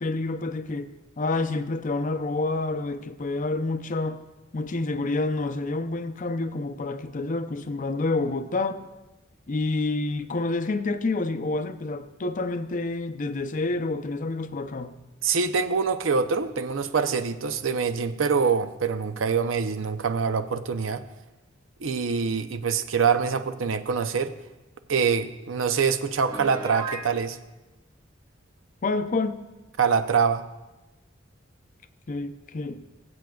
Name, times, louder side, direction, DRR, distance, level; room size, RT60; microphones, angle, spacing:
voice 1, 0.0-0.9 1.2-4.2 4.5-8.8 9.5-14.9 28.8-29.4 32.1-32.8, left 3 dB, 40° left, 0.5 m, -28 dB
voice 2, 15.2-21.0 21.8-24.3 24.9-27.4 29.8-30.4, right 5 dB, 80° right, 0.6 m, -25 dB
Piano, 26.3-27.1, right 3 dB, 20° right, 1.1 m, -34 dB
21.5 x 7.7 x 2.3 m
head